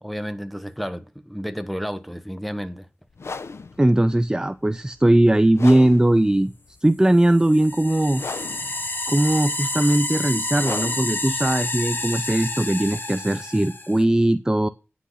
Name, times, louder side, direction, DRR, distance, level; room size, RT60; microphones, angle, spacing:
voice 1, 0.0-2.9, equal, ahead, 1.2 m, -31 dB
sound 1, 3.1-13.0, left 4 dB, 80° left, 0.7 m, -38 dB
voice 2, 3.8-6.5 6.8-8.2 9.1-14.7, right 1 dB, 15° right, 0.5 m, -19 dB
sound 2, 7.2-14.0, left 2 dB, 50° left, 1.6 m, -29 dB
9.9 x 6.2 x 5.6 m
wide cardioid pair, 65°, 4 cm